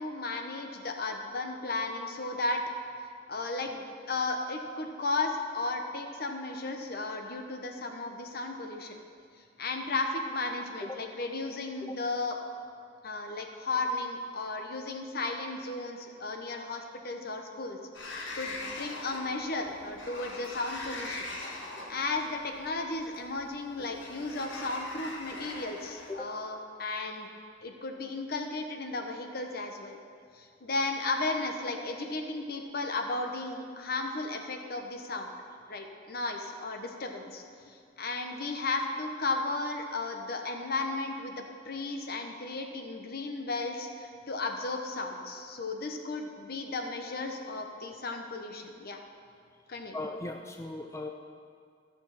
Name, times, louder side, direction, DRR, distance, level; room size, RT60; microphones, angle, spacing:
voice 1, 0.0-2.6 3.3-9.0 9.6-12.4 13.0-21.3 21.9-27.3 27.6-30.0 30.3-35.3 35.7-49.0 49.7-50.0, left 3 dB, 55° left, 4 dB, 1.0 m, -34 dB
Sliding door, 17.9-26.1, left 2 dB, 80° left, 1.6 m, -42 dB
voice 2, 49.9-51.1, left 2 dB, 15° left, 3 dB, 0.4 m, -38 dB
13.5 x 6.3 x 5.7 m, 2.2 s
head